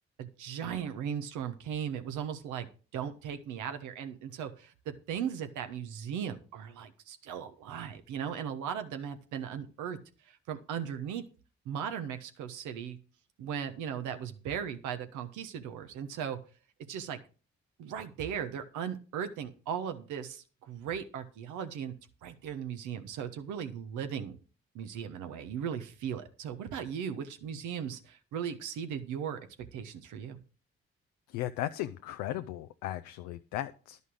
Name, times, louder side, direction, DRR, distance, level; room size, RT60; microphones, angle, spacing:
voice 1, 0.2-2.7 2.9-10.0 10.2-11.2 11.6-13.0 13.4-16.4 16.9-17.2 17.8-21.9 22.2-24.4 24.7-29.4 29.7-30.4, right 8 dB, 85° right, 1.1 m, -37 dB
voice 2, 31.3-34.0, left 13 dB, 90° left, 0.5 m, -36 dB
11.5 x 5.5 x 6.3 m
hypercardioid pair, 45°, 29 cm